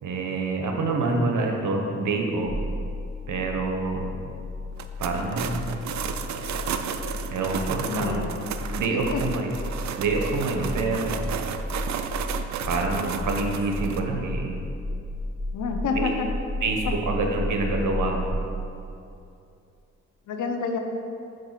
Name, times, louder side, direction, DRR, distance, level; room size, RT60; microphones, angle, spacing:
voice 1, 0.0-2.5 3.3-4.2 5.0-5.8 7.3-8.3 8.8-9.6 10.0-11.2 12.7-14.6 16.0-16.1 16.6-18.4, right 3 dB, 85° right, 2 dB, 0.9 m, -27 dB
sound 1, 2.5-18.3, left 1 dB, 15° left, 1.6 m, -33 dB
sound 2, 4.7-14.0, right 7 dB, 65° right, 0.4 m, -33 dB
voice 2, 7.8-8.2 8.9-9.2 15.5-16.3 20.3-20.8, left 5 dB, 85° left, 4 dB, 0.7 m, -28 dB
5.2 x 4.6 x 5.7 m, 2.6 s
cardioid pair, 65°, 30 cm